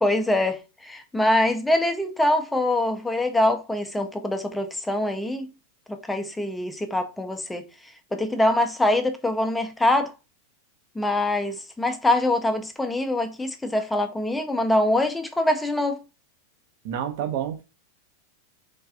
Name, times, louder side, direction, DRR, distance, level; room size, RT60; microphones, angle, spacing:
voice 1, 0.0-5.5 5.9-7.7 8.1-10.1 11.0-16.0, left 1 dB, 5° left, 0.4 m, -24 dB
voice 2, 16.8-17.6, right 9 dB, 50° right, 0.5 m, -28 dB
3.3 x 2.4 x 2.4 m
figure-of-eight pair, 90°, 0 cm